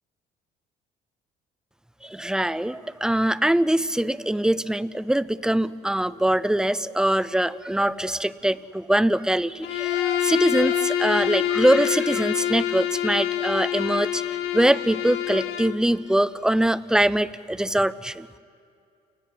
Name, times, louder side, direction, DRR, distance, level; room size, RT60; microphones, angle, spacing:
voice 1, 2.0-18.3, right 1 dB, 5° right, 17 dB, 0.6 m, -23 dB
Bowed string instrument, 9.6-15.8, left 11 dB, 85° left, 1.6 m, -26 dB
30.0 x 17.5 x 9.4 m, 2.5 s
cardioid pair, 110°, 17 cm